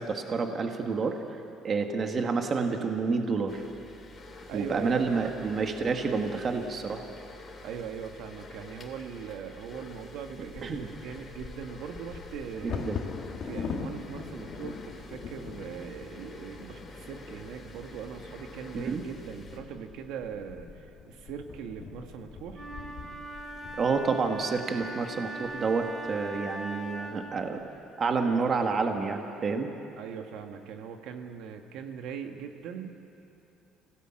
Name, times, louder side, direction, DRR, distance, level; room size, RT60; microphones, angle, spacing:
voice 1, 0.0-3.6 4.5-7.0 10.6-10.9 12.6-13.0 18.7-19.0 23.8-27.6 28.0-29.7, right 4 dB, 30° right, 4 dB, 1.6 m, -29 dB
sound 1, 3.5-19.6, left 2 dB, 25° left, 2.7 m, -48 dB
voice 2, 4.5-5.5 7.6-12.9 13.4-22.6 30.0-32.9, right 7 dB, 70° right, 5 dB, 1.7 m, -40 dB
Bird vocalization bird call bird song / Wind / Thunder, 10.3-26.2 26.8-26.9 27.2-27.6 28.1-28.6, left 6 dB, 40° left, 2.1 m, -43 dB
Wind instrument woodwind instrument, 22.5-27.3, right 1 dB, 5° right, 3.8 m, -40 dB
27.0 x 17.0 x 8.9 m, 2.8 s
cardioid pair, 160°, 0 cm